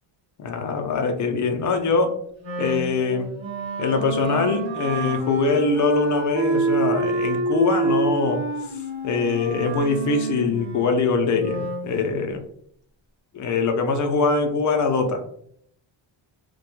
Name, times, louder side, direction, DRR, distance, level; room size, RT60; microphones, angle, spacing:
voice 1, 0.4-2.2 2.6-3.3 3.8-8.4 9.0-12.4 13.3-15.2, left 4 dB, 40° left, 5 dB, 0.4 m, -23 dB
Wind instrument woodwind instrument, 2.4-11.9, right 3 dB, 85° right, 1.0 m, -27 dB
2.2 x 2.1 x 2.9 m, 0.66 s
cardioid pair, 120°, 46 cm